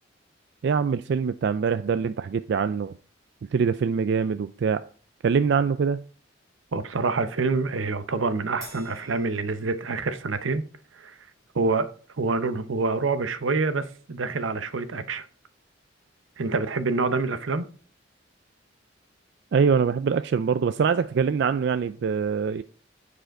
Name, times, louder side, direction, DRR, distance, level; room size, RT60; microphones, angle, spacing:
voice 1, 0.6-3.0 3.5-4.8 5.2-6.0 19.5-22.6, right 6 dB, 60° right, 0.3 m, -24 dB
voice 2, 6.7-10.6 11.0-11.1 11.5-11.9 12.2-15.3 16.4-17.7, right 3 dB, 85° right, 0.7 m, -26 dB
Crash cymbal, 8.6-10.3, equal, 20° right, 4.0 m, -47 dB
8.9 x 5.0 x 4.6 m
head